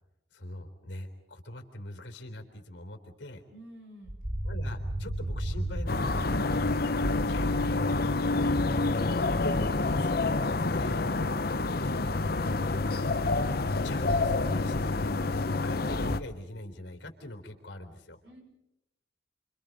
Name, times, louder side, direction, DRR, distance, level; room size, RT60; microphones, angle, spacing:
voice 1, 0.3-3.4 4.4-6.7 7.0-8.1 8.6-8.8 9.1-10.2 10.7-11.0 11.5-12.3 13.4-13.5 13.8-18.2, left 1 dB, 90° left, 5 dB, 3.7 m, -43 dB
voice 2, 3.5-4.2 6.5-6.7 12.3-12.6 18.2-18.4, equal, 70° right, 1 dB, 7.5 m, -50 dB
sound 1, 4.0-9.1 13.5-16.2, right 1 dB, 45° right, 3.1 m, -36 dB
sound 2, 5.9-16.2, left 3 dB, 55° left, 0.8 m, -28 dB
29.5 x 25.5 x 5.3 m, 0.88 s
head